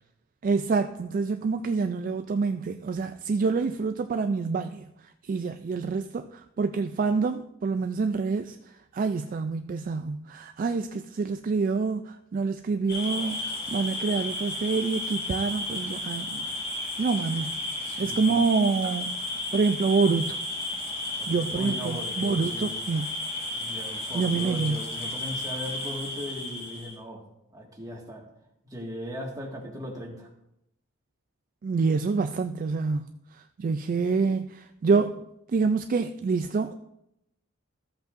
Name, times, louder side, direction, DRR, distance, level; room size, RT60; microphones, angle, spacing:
voice 1, 0.4-4.8 5.2-6.3 6.6-8.6 8.9-16.4 17.0-17.6 18.0-20.4 21.3-23.2 24.1-24.8 31.6-33.1 33.6-35.2 35.5-36.8, right 4 dB, 40° right, 0.3 m, -27 dB
sound 1, 12.9-27.0, left 1 dB, 50° left, 2.8 m, -33 dB
voice 2, 17.8-18.4 21.2-22.7 23.5-27.2 27.5-28.3 28.7-30.3, equal, 15° right, 1.8 m, -38 dB
14.0 x 7.9 x 2.6 m
head